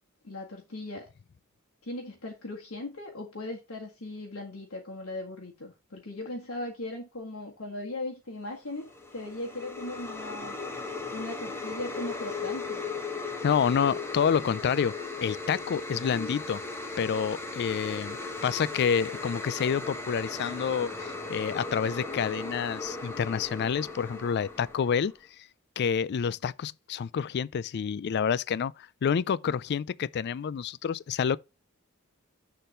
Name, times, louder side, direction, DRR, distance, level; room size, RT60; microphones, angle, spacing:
voice 1, 0.2-1.1 1.8-10.6 11.1-12.8 15.9-16.3, left 2 dB, 85° left, 1.7 m, -38 dB
sound 1, 8.7-25.2, left 3 dB, 10° left, 1.2 m, -37 dB
voice 2, 13.4-16.6 17.0-18.2 18.4-25.1 25.8-28.7 29.0-31.4, left 7 dB, 50° left, 0.3 m, -28 dB
6.7 x 3.8 x 6.4 m
head